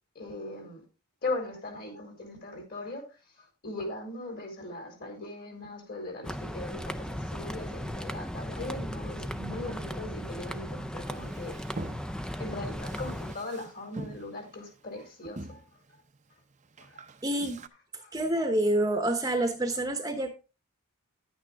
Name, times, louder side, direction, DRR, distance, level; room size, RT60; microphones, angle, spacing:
voice 1, 0.1-0.8 1.2-11.6 12.1-15.6 15.9-16.0 16.8-17.0 18.0-18.1, left 2 dB, 45° left, 4.4 m, -39 dB
sound 1, 6.2-13.3, equal, 5° left, 0.4 m, -36 dB
Male speech man speaking, 11.0-17.7, right 2 dB, 35° right, 0.7 m, -45 dB
voice 2, 17.2-17.6 18.1-20.3, right 1 dB, 15° right, 1.0 m, -27 dB
11.0 x 8.9 x 3.5 m
head